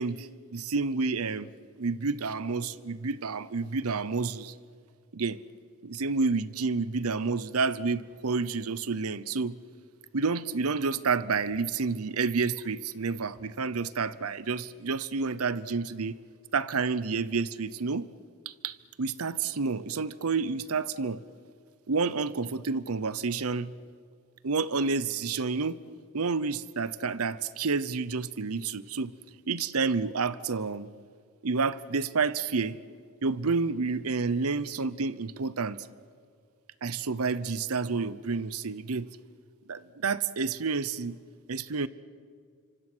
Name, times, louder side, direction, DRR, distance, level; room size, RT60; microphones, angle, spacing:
voice 1, 0.0-1.5 1.8-4.5 5.1-5.4 5.8-9.6 10.1-16.2 16.5-18.1 18.5-21.2 21.9-23.7 24.4-25.8 26.1-29.1 29.5-30.9 31.4-32.8 33.2-35.9 36.8-39.1 39.7-41.2 41.5-41.9, right 4 dB, 85° right, 0.8 m, -29 dB
26.5 x 25.5 x 6.2 m
head